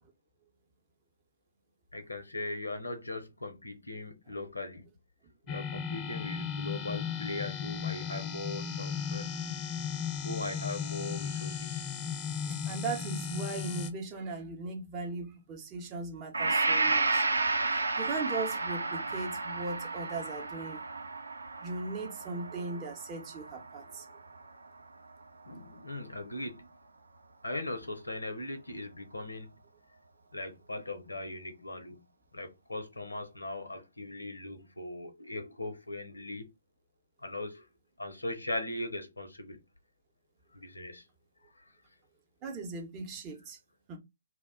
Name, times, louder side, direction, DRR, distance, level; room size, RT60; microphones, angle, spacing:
voice 1, 1.9-4.9 5.5-9.3 10.2-11.9 25.4-26.7 27.4-29.5 30.3-32.1 32.3-36.5 37.2-37.6 38.0-39.6 40.5-41.1 41.4-41.6, left 2 dB, 80° left, 0.6 m, -39 dB
sound 1, 5.5-13.9, left 7 dB, 20° left, 0.3 m, -36 dB
voice 2, 12.5-17.2 18.0-20.8 21.6-24.1 42.4-43.6 43.9-44.0, right 3 dB, 20° right, 0.7 m, -38 dB
Gong, 16.3-24.4, right 3 dB, 75° right, 0.5 m, -32 dB
2.3 x 2.0 x 3.5 m
figure-of-eight pair, 130°, 0 cm